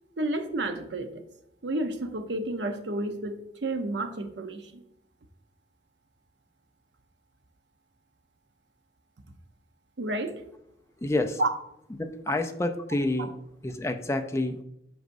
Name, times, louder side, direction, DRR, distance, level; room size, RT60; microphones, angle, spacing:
voice 1, 0.2-1.2 1.6-4.8 10.0-10.3 11.4-11.5, right 2 dB, 80° right, 7 dB, 0.8 m, -30 dB
voice 2, 11.0-11.4 12.0-13.3 13.6-14.6, left 2 dB, 15° left, 7 dB, 0.4 m, -28 dB
7.9 x 5.1 x 2.6 m, 0.79 s
head